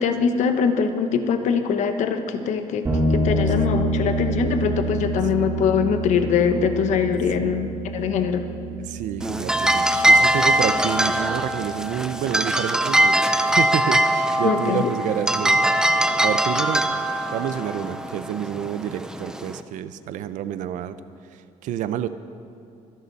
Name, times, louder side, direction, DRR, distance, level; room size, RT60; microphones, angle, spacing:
voice 1, 0.0-8.5 14.4-14.9, left 6 dB, 65° left, 7 dB, 1.2 m, -23 dB
sound 1, 2.8-12.3, right 1 dB, 20° right, 3.9 m, -28 dB
voice 2, 8.8-16.9 17.3-21.0 21.3-22.1, right 10 dB, 75° right, 13 dB, 0.7 m, -29 dB
sound 2, 9.2-19.6, right 1 dB, 5° right, 0.6 m, -21 dB
24.5 x 11.5 x 4.2 m, 2.5 s
cardioid pair, 140°, 13 cm